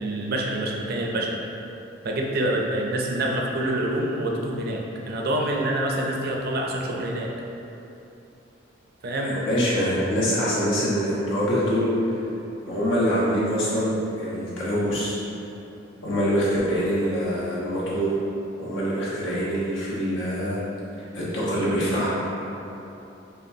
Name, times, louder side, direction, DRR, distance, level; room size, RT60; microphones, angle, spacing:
voice 1, 0.0-1.4 2.0-7.3 9.0-9.4, right 1 dB, 55° right, -1 dB, 0.5 m, -26 dB
voice 2, 9.2-12.2 12.6-15.1 16.0-18.1 18.6-20.6 21.1-22.1, equal, 85° left, -8 dB, 1.0 m, -24 dB
5.1 x 2.2 x 2.7 m, 2.9 s
head